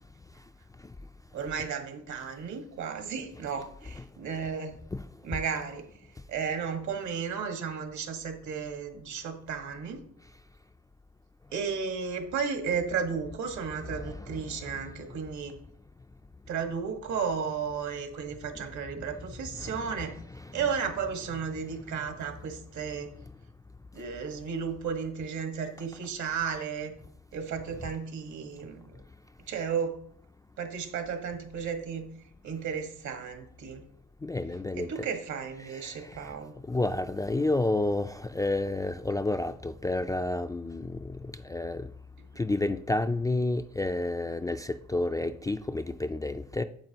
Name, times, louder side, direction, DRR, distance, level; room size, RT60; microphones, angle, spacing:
voice 1, 1.3-4.8 5.2-5.9 6.3-10.0 11.5-15.6 16.5-20.1 20.5-23.1 23.9-26.9 27.3-28.8 29.5-30.0 30.6-32.1 32.4-33.8 34.7-36.5, right 6 dB, 70° right, 1.6 m, -34 dB
voice 2, 13.8-14.8 18.5-18.7 19.6-20.7 21.3-21.4 34.2-35.1 35.6-36.3 36.7-41.9 42.4-46.6, left 2 dB, 10° left, 0.3 m, -31 dB
9.0 x 7.4 x 2.9 m
cardioid pair, 90°, 30 cm